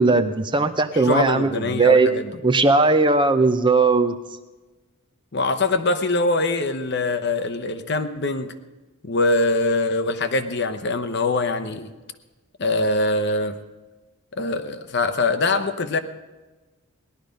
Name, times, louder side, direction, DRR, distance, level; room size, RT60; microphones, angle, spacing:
voice 1, 0.0-2.1 2.4-4.1, right 3 dB, 20° right, 9 dB, 0.6 m, -18 dB
voice 2, 0.9-2.3 5.3-8.5 9.0-11.9 12.6-13.6 14.4-16.0, left 2 dB, 50° left, 9 dB, 0.9 m, -23 dB
18.0 x 11.5 x 5.2 m, 1.2 s
head